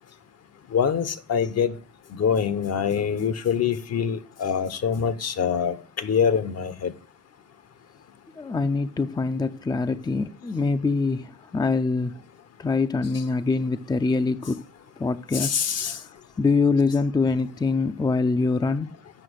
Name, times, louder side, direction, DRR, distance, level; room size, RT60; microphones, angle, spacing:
voice 1, 0.7-1.7 2.1-6.9 15.3-16.0, left 7 dB, 55° left, 1.0 m, -25 dB
voice 2, 8.4-12.2 12.6-14.6 15.0-15.6 15.8-18.9, left 4 dB, 15° left, 0.5 m, -24 dB
7.7 x 6.0 x 6.4 m
cardioid pair, 90°, 30 cm